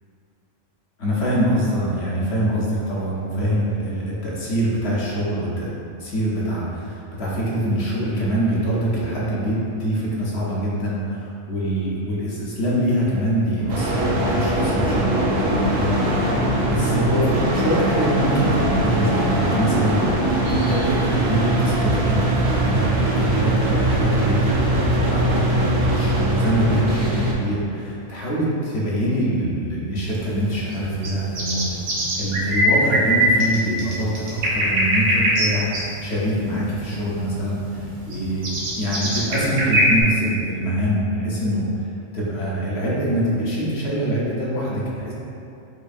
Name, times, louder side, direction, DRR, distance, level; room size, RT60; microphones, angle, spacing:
voice 1, 1.0-5.7 6.0-15.9 16.7-24.6 24.8-31.6 32.2-35.7 36.0-41.9 42.1-45.1, right 1 dB, 55° left, -6 dB, 0.9 m, -24 dB
sound 1, 13.6-27.4, left 1 dB, 80° left, 1.4 m, -27 dB
sound 2, 13.7-27.3, right 2 dB, 60° right, 0.7 m, -22 dB
sound 3, 30.0-40.0, right 1 dB, 90° right, 1.1 m, -22 dB
4.9 x 2.3 x 2.5 m, 2.7 s
omnidirectional pair, 1.4 m